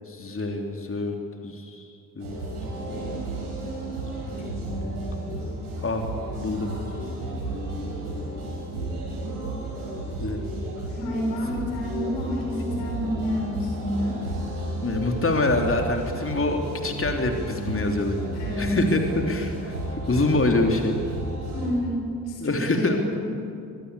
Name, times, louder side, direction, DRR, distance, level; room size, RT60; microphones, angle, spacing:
voice 1, 0.1-1.1 1.4-1.9 2.2-2.3 4.4-5.0 5.8-6.0 6.3-6.7 10.2-10.4 14.8-18.1 18.6-19.7 20.1-21.0 22.4-23.0, left 2 dB, 30° left, 3 dB, 3.1 m, -25 dB
sound 1, 2.2-21.7, right 1 dB, 90° right, 5.4 m, -32 dB
voice 2, 10.9-14.2 18.3-18.8 21.5-23.3, equal, 80° left, -1 dB, 6.6 m, -29 dB
23.5 x 21.5 x 8.3 m, 2.5 s
hypercardioid pair, 45°, 45 cm